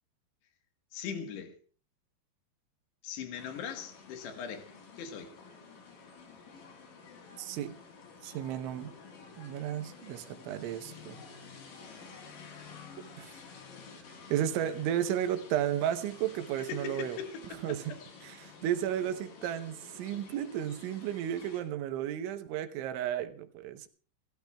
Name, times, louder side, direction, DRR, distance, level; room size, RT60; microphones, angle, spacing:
voice 1, 0.9-1.6 3.0-4.7 5.0-5.3 16.6-17.8, left 7 dB, 70° left, 3.4 m, -40 dB
sound 1, 3.4-21.6, left 5 dB, 55° left, 4.1 m, -51 dB
voice 2, 7.4-7.8 8.2-8.9 9.4-11.2 13.2-13.3 14.3-17.2 17.6-17.8 18.2-23.9, right 11 dB, 90° right, 3.4 m, -33 dB
29.0 x 13.0 x 2.3 m
omnidirectional pair, 5.3 m